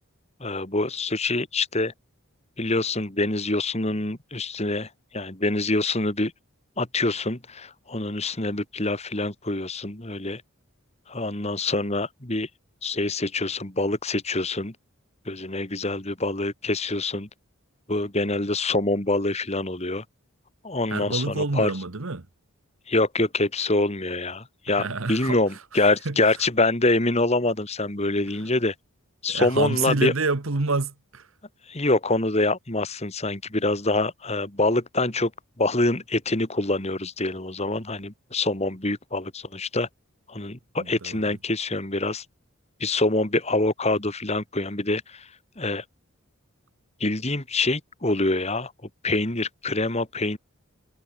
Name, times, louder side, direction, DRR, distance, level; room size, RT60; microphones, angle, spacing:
voice 1, 0.4-1.9 2.6-6.3 6.8-10.4 11.1-12.5 12.8-14.8 15.3-17.3 17.9-20.0 20.6-21.7 22.9-28.7 29.2-30.1 31.7-35.3 35.6-39.9 40.3-42.2 42.8-45.3 45.6-45.8 47.0-48.7 49.0-50.4, left 2 dB, 30° left, 2.4 m, -25 dB
voice 2, 20.9-22.2 24.8-25.4 26.1-26.2 29.3-31.2 41.0-41.2, right 3 dB, 65° right, 1.3 m, -27 dB
head